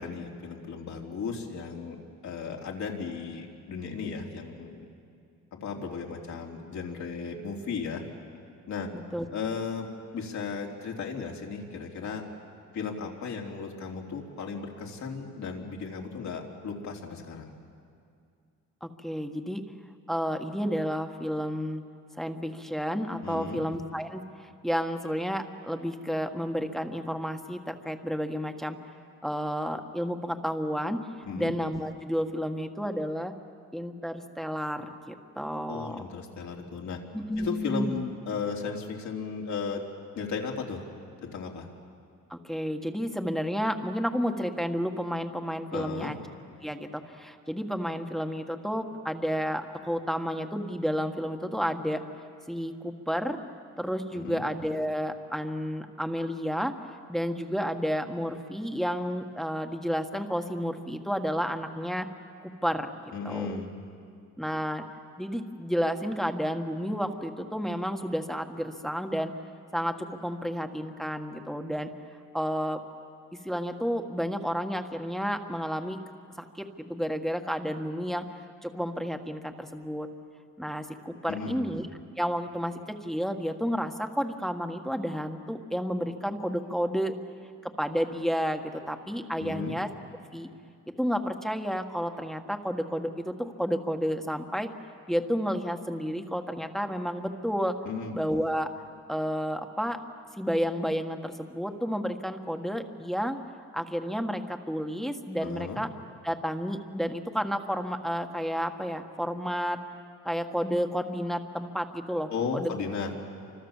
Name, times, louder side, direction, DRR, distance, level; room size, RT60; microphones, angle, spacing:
voice 1, 0.0-2.0 2.2-4.8 5.5-8.0 8.7-8.9 9.3-9.9 10.1-12.3 12.7-17.5 23.2-23.6 31.2-31.5 35.7-37.0 37.4-39.8 40.2-40.8 41.2-41.7 45.7-46.1 54.1-54.4 63.1-63.7 81.3-81.7 89.4-89.8 97.9-98.1 105.4-105.8 112.3-113.1, left 5 dB, 70° left, 1 dB, 3.7 m, -35 dB
voice 2, 8.9-9.3 18.8-19.6 20.1-21.8 22.2-28.8 29.2-31.0 31.4-33.3 33.7-36.0 37.1-38.0 42.3-46.2 46.6-52.0 52.5-53.4 53.8-56.8 57.1-62.1 62.4-62.9 63.2-63.6 64.4-64.8 65.2-69.3 69.7-71.9 72.3-72.8 73.4-76.0 76.4-78.2 78.6-80.1 80.6-81.9 82.2-87.1 87.6-89.9 90.3-90.5 91.0-94.7 95.1-97.7 98.1-98.7 99.1-100.0 100.4-103.4 103.7-105.9 106.2-109.8 110.2-112.7, equal, ahead, 5 dB, 1.7 m, -31 dB
29.0 x 25.5 x 7.4 m, 2.3 s
cardioid pair, 90°, 30 cm